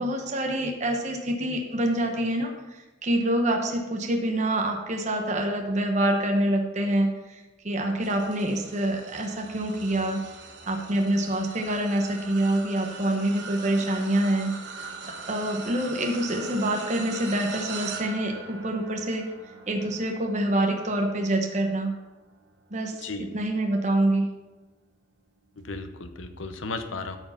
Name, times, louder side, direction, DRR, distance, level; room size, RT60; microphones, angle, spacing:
voice 1, 0.0-10.2 10.7-14.5 15.3-19.2 19.7-21.9 22.7-23.0 23.3-24.3, right 1 dB, 35° right, 2 dB, 1.1 m, -26 dB
sound 1, 8.0-23.5 24.0-24.3 25.5-25.6, right 4 dB, 60° right, 1.1 m, -41 dB
voice 2, 25.6-27.2, left 3 dB, 80° left, 8 dB, 0.9 m, -35 dB
13.0 x 4.8 x 5.7 m, 1.1 s
head